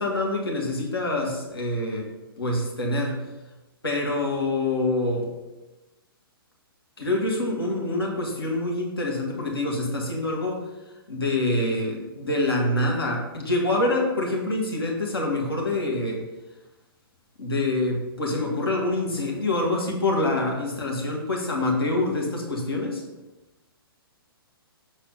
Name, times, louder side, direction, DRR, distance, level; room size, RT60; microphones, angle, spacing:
voice 1, 0.0-2.1 2.4-3.2 3.8-5.3 7.0-10.6 11.1-16.2 17.4-23.0, left 2 dB, 75° left, -1 dB, 1.8 m, -26 dB
7.1 x 4.1 x 5.2 m, 1.0 s
figure-of-eight pair, 120°, 13 cm